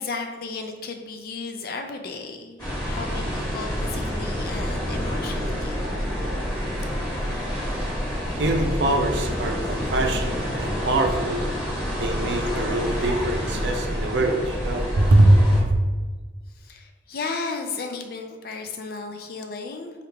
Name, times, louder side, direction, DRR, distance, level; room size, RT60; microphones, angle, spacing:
voice 1, 0.0-2.6 2.9-5.8 13.0-13.1 16.6-19.9, left 4 dB, 50° left, 5 dB, 0.4 m, -34 dB
sound 1, 2.6-15.6, equal, 25° left, 1.2 m, -28 dB
voice 2, 8.3-11.5 12.0-15.8, right 1 dB, 65° right, 3 dB, 0.5 m, -22 dB
3.3 x 2.4 x 4.4 m, 1.4 s
head